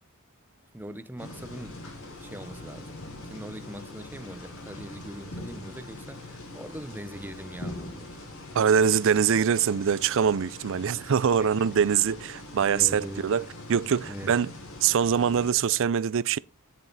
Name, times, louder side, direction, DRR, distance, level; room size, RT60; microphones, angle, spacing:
voice 1, 0.7-8.1 11.4-11.7 12.7-13.3 14.0-14.4, right 1 dB, 10° right, 0.8 m, -41 dB
sound 1, 1.2-15.5, left 2 dB, 70° left, 3.5 m, -43 dB
sound 2, 2.9-3.7 5.3-6.2 7.6-8.5, left 1 dB, 55° left, 1.3 m, -43 dB
voice 2, 8.5-13.4 13.7-14.5 14.8-16.4, right 7 dB, 65° right, 0.4 m, -23 dB
10.5 x 7.4 x 3.9 m
head